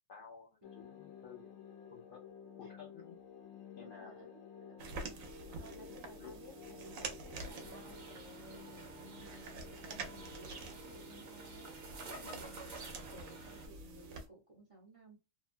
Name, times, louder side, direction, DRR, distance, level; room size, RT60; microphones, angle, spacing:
voice 1, 0.1-2.2 2.6-3.2 3.8-4.1 5.6-6.4 8.5-8.7 12.1-12.5, left 6 dB, 60° left, -1 dB, 0.6 m, -54 dB
sound 1, 0.6-12.4, left 8 dB, 80° left, 1.0 m, -54 dB
voice 2, 3.8-4.8 5.6-11.8 12.2-15.2, right 1 dB, 30° right, -2 dB, 0.7 m, -57 dB
sound 2, 4.8-14.3, right 3 dB, 90° right, 1.1 m, -48 dB
sound 3, 7.3-13.7, right 3 dB, 55° right, 1.1 m, -51 dB
2.8 x 2.2 x 2.5 m, 0.27 s
omnidirectional pair, 1.4 m